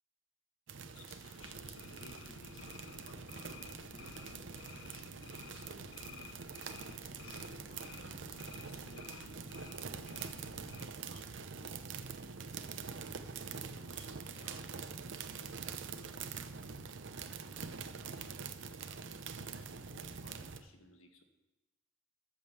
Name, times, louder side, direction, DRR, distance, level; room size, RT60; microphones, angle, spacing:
sound 1, 0.7-20.6, right 5 dB, 65° right, 0.7 m, -45 dB
voice 1, 0.9-6.2 6.8-9.7 10.6-11.3 12.8-13.1 13.7-14.7 15.4-16.3 18.2-18.7 19.3-21.2, left 2 dB, 85° left, 5 dB, 1.6 m, -60 dB
sound 2, 1.4-10.9, left 6 dB, 65° left, 0.5 m, -54 dB
13.5 x 5.2 x 6.9 m, 1.1 s
head